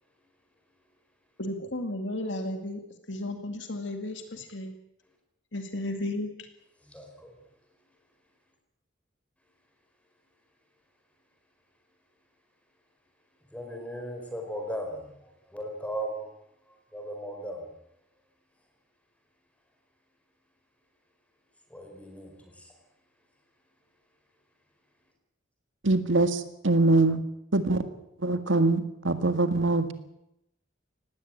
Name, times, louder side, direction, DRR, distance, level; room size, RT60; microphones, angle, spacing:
voice 1, 1.4-4.8 5.5-6.3, left 1 dB, 65° left, 6 dB, 2.3 m, -34 dB
voice 2, 6.8-7.4 13.5-16.3 16.7-17.7 21.7-22.7, right 1 dB, 5° left, 3 dB, 4.9 m, -37 dB
voice 3, 25.8-27.2 27.5-27.8 28.2-29.9, right 2 dB, 75° right, 10 dB, 1.9 m, -23 dB
19.0 x 16.5 x 9.0 m, 0.84 s
head